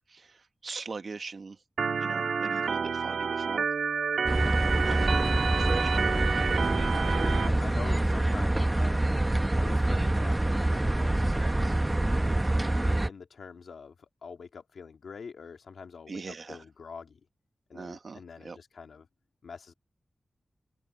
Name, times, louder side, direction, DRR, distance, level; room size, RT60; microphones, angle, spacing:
voice 1, 0.0-1.6 2.0-3.7 4.8-5.2 5.5-6.7 16.1-16.6 17.7-18.6, right 4 dB, 50° right, 1.4 m, -40 dB
Organ, 1.8-7.5, right 5 dB, 90° right, 1.5 m, -29 dB
voice 2, 4.3-5.0 6.9-9.1 9.5-11.8 12.2-12.4 12.8-17.2 17.7-19.1 19.4-19.7, left 5 dB, 75° left, 2.2 m, -45 dB
Airbus during flight, 4.3-13.1, right 1 dB, 15° right, 0.8 m, -26 dB
open air
wide cardioid pair, 175°, 0 cm